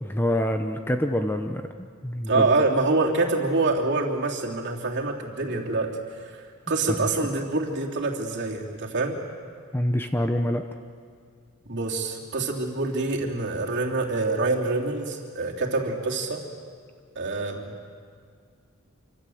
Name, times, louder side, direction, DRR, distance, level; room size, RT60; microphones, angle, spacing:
voice 1, 0.0-2.4 7.0-7.1 9.7-10.6, equal, 10° left, 6 dB, 0.8 m, -26 dB
voice 2, 2.3-9.2 11.6-16.4 17.1-17.9, right 3 dB, 50° right, -1 dB, 3.2 m, -26 dB
27.0 x 25.5 x 7.8 m, 2.1 s
head